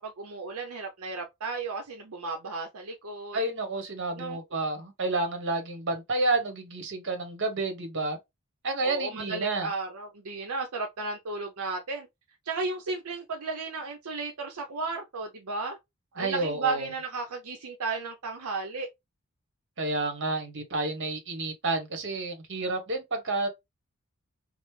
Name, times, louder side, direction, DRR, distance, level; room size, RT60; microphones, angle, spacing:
voice 1, 0.0-3.4 4.2-4.4 8.8-12.1 12.5-15.8 16.2-18.9, right 3 dB, 80° right, 0.7 m, -34 dB
voice 2, 3.3-8.2 8.6-9.7 16.2-16.9 19.8-23.5, right 2 dB, 60° right, 1.2 m, -30 dB
5.2 x 2.0 x 3.2 m
head